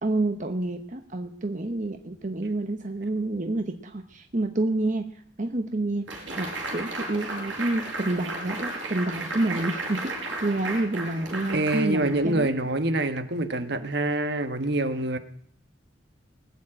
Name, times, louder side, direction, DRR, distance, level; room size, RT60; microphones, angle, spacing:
voice 1, 0.0-5.1 5.4-10.1 10.4-12.7, right 2 dB, 40° right, 6 dB, 0.9 m, -28 dB
sound 1, 6.1-12.5, right 2 dB, 75° right, 4.6 m, -34 dB
voice 2, 11.5-15.2, right 2 dB, 60° right, 9 dB, 1.3 m, -26 dB
19.5 x 7.4 x 8.8 m, 0.63 s
head